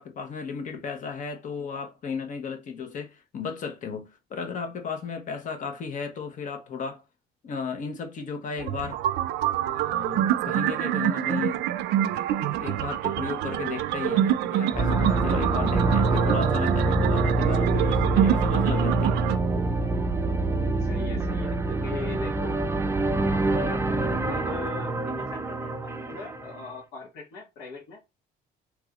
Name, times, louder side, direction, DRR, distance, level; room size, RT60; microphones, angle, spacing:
voice 1, 0.0-7.0 7.4-9.0 9.6-11.7 12.6-19.2, left 5 dB, 50° left, 1.0 m, -34 dB
sound 1, 8.6-19.4, right 11 dB, 80° right, 0.4 m, -26 dB
sound 2, 14.7-26.7, right 3 dB, 15° right, 0.4 m, -25 dB
voice 2, 20.8-22.6 23.3-28.0, left 4 dB, 85° left, 1.5 m, -40 dB
3.4 x 3.1 x 2.3 m
cardioid pair, 110°, 17 cm